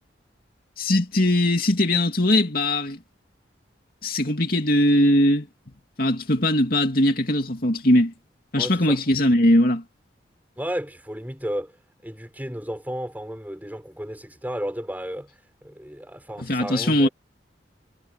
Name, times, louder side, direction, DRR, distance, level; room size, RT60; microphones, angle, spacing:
voice 1, 0.8-3.0 4.0-5.5 6.0-8.1 8.5-9.8 16.4-17.1, left 1 dB, 50° left, 2.8 m, -20 dB
voice 2, 8.5-9.0 10.6-11.7 12.0-15.3 15.6-17.1, equal, 10° right, 6.3 m, -33 dB
head